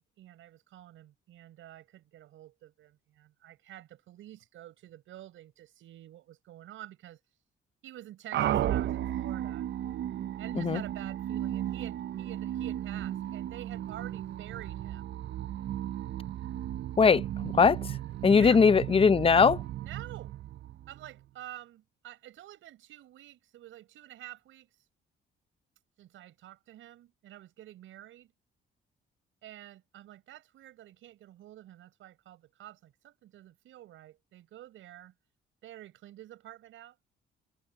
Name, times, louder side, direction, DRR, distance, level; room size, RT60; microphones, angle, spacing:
voice 1, 0.0-7.2 7.8-9.7 10.4-15.0 18.3-18.7 19.8-20.3 20.9-24.7 26.0-28.3 29.4-35.1 35.6-37.0, right 13 dB, 80° right, 5.9 m, -49 dB
sound 1, 8.3-21.2, right 12 dB, 65° right, 0.6 m, -35 dB
voice 2, 17.0-17.8 18.2-19.6, left 5 dB, 30° left, 0.6 m, -21 dB
cardioid pair, 90°, 20 cm